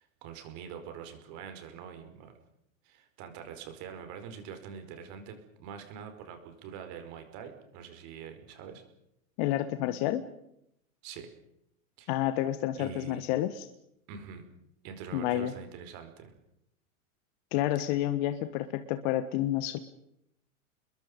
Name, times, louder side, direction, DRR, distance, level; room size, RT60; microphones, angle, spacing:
voice 1, 0.0-2.3 2.8-8.8 11.0-11.3 12.0-12.1 12.8-13.2 14.1-14.5 14.8-16.3, right 7 dB, 45° right, 7 dB, 5.1 m, -44 dB
voice 2, 9.4-10.2 12.1-13.7 15.1-15.5 17.5-19.8, left 13 dB, 45° left, 10 dB, 1.6 m, -29 dB
29.0 x 21.5 x 5.4 m, 0.78 s
hypercardioid pair, 120°, 41 cm